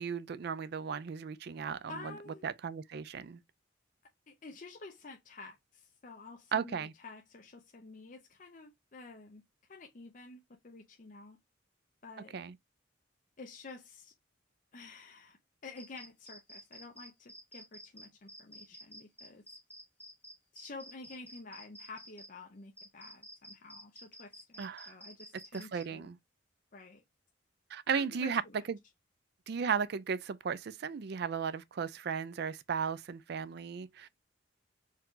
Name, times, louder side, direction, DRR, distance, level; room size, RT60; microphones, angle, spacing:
voice 1, 0.0-1.9 2.4-3.4 6.5-6.9 12.3-12.5 24.6-24.9 25.5-26.2 27.7-28.4 28.7-28.8 29.5-34.1, right 6 dB, 55° right, 0.4 m, -35 dB
voice 2, 1.9-2.4 4.3-9.4 9.7-11.4 12.0-12.3 13.4-14.1 14.7-19.4 20.5-26.1 26.7-27.0 27.9-28.7, left 3 dB, 45° left, 0.7 m, -50 dB
sound 1, 15.8-22.3 22.8-25.9, right 1 dB, 10° left, 1.2 m, -51 dB
4.6 x 2.4 x 3.8 m
head